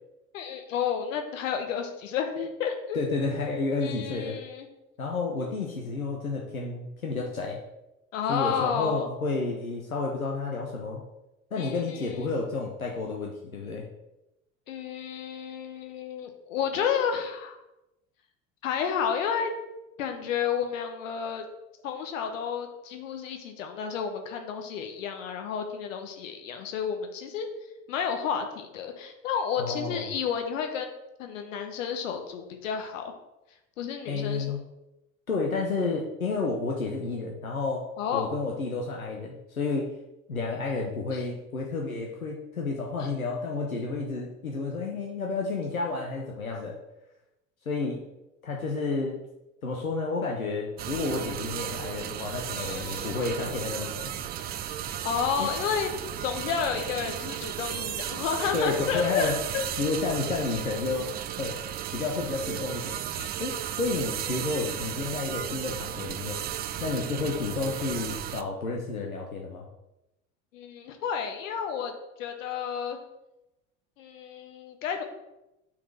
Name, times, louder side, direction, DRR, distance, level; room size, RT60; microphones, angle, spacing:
voice 1, 0.3-3.0 3.8-4.7 8.1-9.1 11.6-12.3 14.7-17.6 18.6-19.5 20.0-21.4 21.8-27.5 27.9-30.9 31.2-33.1 33.8-34.5 38.0-38.3 41.1-41.2 43.0-43.1 52.6-53.1 55.0-55.9 56.2-59.6 63.1-63.3 70.5-71.9 72.2-73.0 74.0-75.0, left 7 dB, 65° left, 5 dB, 1.2 m, -31 dB
voice 2, 2.9-4.4 5.0-7.6 8.3-11.0 11.5-13.9 29.6-30.1 34.1-34.6 35.3-37.9 38.1-39.9 40.3-46.8 47.7-48.0 48.4-49.2 49.6-54.1 55.4-55.5 58.5-59.4 59.8-61.1 61.4-61.6 61.9-63.0 63.4-66.4 66.8-69.7, left 3 dB, 90° left, -1 dB, 0.8 m, -31 dB
sound 1, 50.8-68.4, right 11 dB, 25° right, 0.3 m, -35 dB
5.9 x 4.1 x 6.1 m, 0.93 s
figure-of-eight pair, 70°, 41 cm